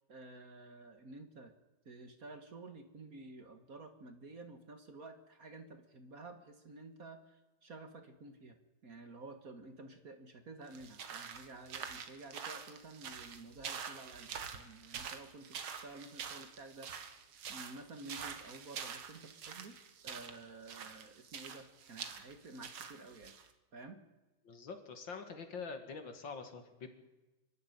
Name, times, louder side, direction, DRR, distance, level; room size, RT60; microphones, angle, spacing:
voice 1, 0.1-1.5 1.9-17.0 17.5-19.8 20.0-23.4 23.7-24.0, right 2 dB, 45° right, 8 dB, 1.8 m, -52 dB
sound 1, 10.7-23.5, right 7 dB, 80° right, 2.3 m, -46 dB
voice 2, 24.4-26.9, left 5 dB, 65° left, 7 dB, 2.6 m, -45 dB
24.5 x 11.5 x 10.0 m, 1.1 s
omnidirectional pair, 2.3 m